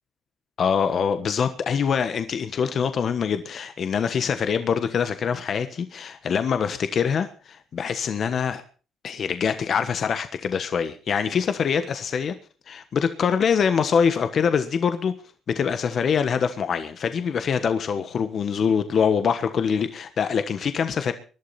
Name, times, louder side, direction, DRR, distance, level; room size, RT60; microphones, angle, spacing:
voice 1, 0.6-8.6 9.0-12.3 12.7-15.1 15.5-21.1, left 6 dB, 55° left, 1.3 m, -24 dB
20.5 x 11.5 x 4.3 m
supercardioid pair, 65°, 0 cm